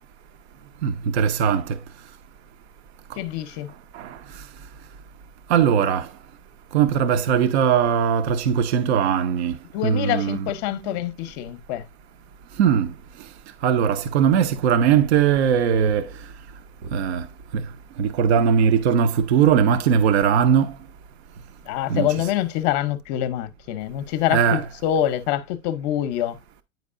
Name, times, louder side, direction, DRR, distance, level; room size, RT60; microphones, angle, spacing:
voice 1, 0.8-1.8 3.9-4.4 5.5-6.1 6.7-9.6 9.8-11.0 12.6-12.9 13.2-13.3 13.6-16.3 16.8-17.3 17.5-17.7 18.0-20.8 21.9-22.3 24.3-24.6, right 8 dB, 55° right, 0.7 m, -20 dB
voice 2, 3.2-3.7 9.7-11.9 21.7-26.4, left 12 dB, 35° left, 0.7 m, -25 dB
9.4 x 4.6 x 2.5 m
supercardioid pair, 150°, 39 cm